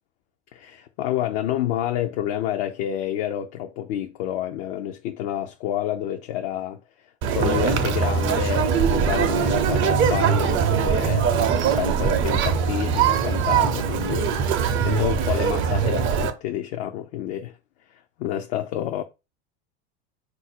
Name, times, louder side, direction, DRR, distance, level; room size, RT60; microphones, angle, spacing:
voice 1, 0.5-6.8 7.3-11.3 11.8-14.3 14.8-17.6 17.9-19.0, left 11 dB, 60° left, 0.5 m, -28 dB
Conversation, 7.2-16.3, right 7 dB, 40° right, 0.6 m, -22 dB
3.9 x 2.6 x 4.2 m
hypercardioid pair, 100°, 32 cm